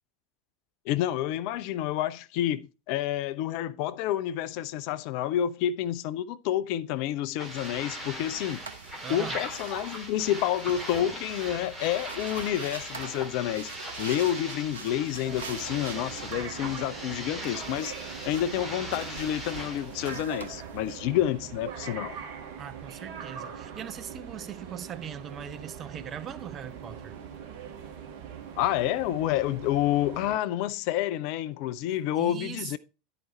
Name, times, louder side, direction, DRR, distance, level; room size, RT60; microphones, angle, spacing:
voice 1, 0.9-8.6 9.1-13.7 14.0-17.9 18.2-22.2 28.6-32.8, left 12 dB, 50° left, 0.4 m, -29 dB
sound 1, 7.4-20.1, equal, 5° right, 2.3 m, -40 dB
sound 2, 7.4-21.0, right 5 dB, 70° right, 0.8 m, -45 dB
voice 2, 9.0-9.4 22.6-27.2 32.2-32.8, right 8 dB, 30° right, 0.6 m, -40 dB
sound 3, 15.2-30.4, right 7 dB, 50° right, 1.4 m, -42 dB
11.0 x 4.9 x 4.2 m
figure-of-eight pair, 80°, 0 cm